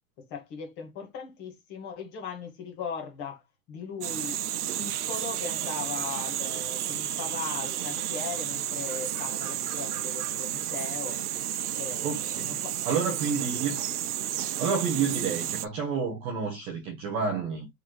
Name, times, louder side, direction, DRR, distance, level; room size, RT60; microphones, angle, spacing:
voice 1, 0.2-3.4 3.7-4.4 4.8-11.2 11.7-12.8 13.1-13.6, left 6 dB, 25° left, 1.6 m, -39 dB
sound 1, 4.0-15.7, right 11 dB, 85° right, 0.8 m, -32 dB
voice 2, 12.0-12.6 12.9-13.8 14.3-17.7, right 6 dB, 15° right, 0.6 m, -30 dB
4.5 x 3.8 x 3.1 m
hypercardioid pair, 165°, 44 cm